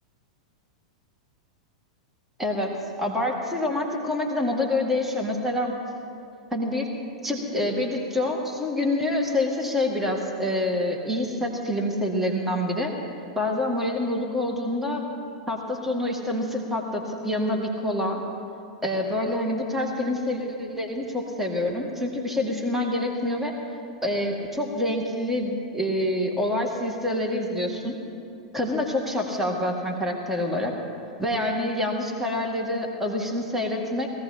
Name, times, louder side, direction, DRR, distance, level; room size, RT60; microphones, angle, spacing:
voice 1, 2.4-2.7 3.0-5.7 6.5-6.9 7.2-12.9 13.4-15.0 15.5-18.2 18.8-23.5 24.0-28.0 28.5-30.7 31.2-34.1, left 1 dB, 5° right, -1 dB, 2.0 m, -26 dB
21.5 x 16.0 x 2.9 m, 2.6 s
figure-of-eight pair, 95°, 3 cm